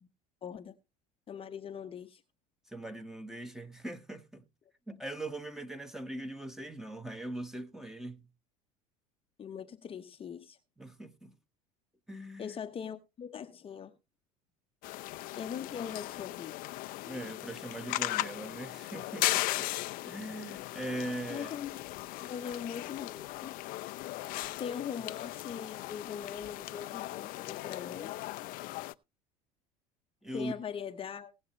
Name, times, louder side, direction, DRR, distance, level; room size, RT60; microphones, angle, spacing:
voice 1, 0.4-0.7 1.3-2.2 9.4-10.6 12.4-14.0 15.4-16.5 21.3-23.6 24.6-28.3 30.3-31.3, left 7 dB, 30° left, 0.9 m, -41 dB
voice 2, 2.7-4.4 4.9-8.3 10.8-11.3 12.1-12.6 17.1-19.7 20.1-21.5 30.2-30.5, right 1 dB, ahead, 1.4 m, -41 dB
sound 1, 14.8-28.9, left 19 dB, 45° left, 0.6 m, -37 dB
19.5 x 7.3 x 3.1 m
figure-of-eight pair, 70°, 19 cm